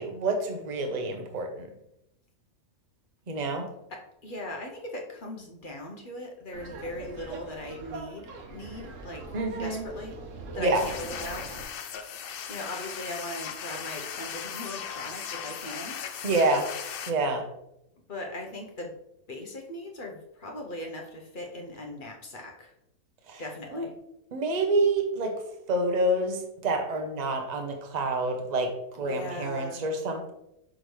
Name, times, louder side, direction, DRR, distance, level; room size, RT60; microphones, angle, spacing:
voice 1, 0.0-1.7 3.3-3.7 9.3-9.9 10.6-10.8 16.2-16.7 17.1-17.4 23.3-23.4 23.7-23.9 24.3-25.4 25.7-30.3, right 2 dB, 35° right, 4 dB, 0.8 m, -27 dB
voice 2, 3.9-9.3 9.6-10.2 10.5-11.5 12.5-16.0 18.1-18.9 19.3-22.7 23.4-23.9 29.0-29.8, left 1 dB, 45° left, 1 dB, 0.8 m, -39 dB
Laughter, 6.5-11.6, right 3 dB, 60° right, 1.2 m, -42 dB
sound 1, 10.7-17.1, left 8 dB, 70° left, 0.5 m, -38 dB
6.1 x 5.0 x 3.1 m, 0.81 s
omnidirectional pair, 1.5 m